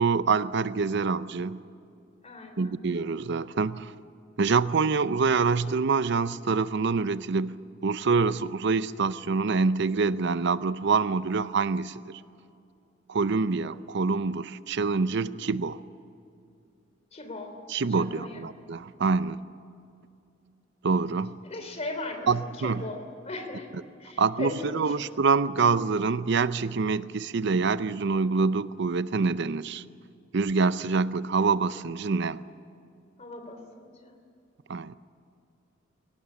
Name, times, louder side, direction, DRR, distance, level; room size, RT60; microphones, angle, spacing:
voice 1, 0.0-1.6 2.6-3.9 4.4-7.5 7.8-12.1 13.1-15.8 17.7-19.4 20.8-21.3 22.3-22.8 24.2-29.8 30.3-32.4 34.7-35.0, right 4 dB, 65° right, 15 dB, 0.6 m, -26 dB
voice 2, 2.2-2.8 17.1-17.6 17.9-18.4 21.4-23.7 24.0-25.0 33.2-34.1, left 2 dB, 35° left, 6 dB, 3.1 m, -38 dB
21.5 x 18.5 x 9.7 m, 2.5 s
head